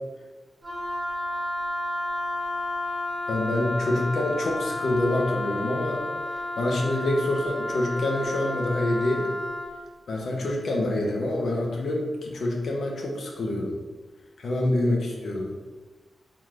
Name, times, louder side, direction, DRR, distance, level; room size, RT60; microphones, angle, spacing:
Wind instrument woodwind instrument, 0.6-9.7, left 1 dB, 10° right, 0.6 m, -31 dB
voice 1, 3.3-6.0 6.3-9.3 10.1-13.8 14.4-15.5, left 1 dB, 70° left, 0 dB, 0.8 m, -26 dB
3.8 x 2.5 x 4.6 m, 1.3 s
wide cardioid pair, 150°, 0 cm